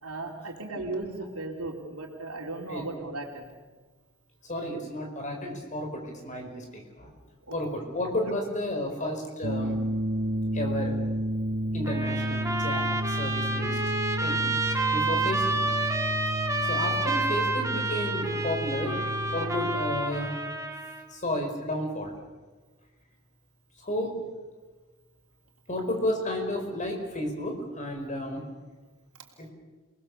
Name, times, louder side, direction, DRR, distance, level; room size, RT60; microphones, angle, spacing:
voice 1, 0.0-3.5 7.5-7.6, right 2 dB, 85° right, 0 dB, 3.2 m, -36 dB
voice 2, 4.5-7.1 7.5-9.7 10.5-11.0 11.7-13.8 14.2-14.5 14.9-15.6 16.7-20.4 21.1-22.1 23.8-24.2 25.7-28.4 29.4-29.5, left 1 dB, 35° left, 3 dB, 4.9 m, -32 dB
sound 1, 9.4-20.0, right 1 dB, 60° right, 1.6 m, -31 dB
Trumpet, 11.8-21.0, right 2 dB, 15° right, 1.8 m, -29 dB
29.0 x 19.5 x 7.2 m, 1.3 s
head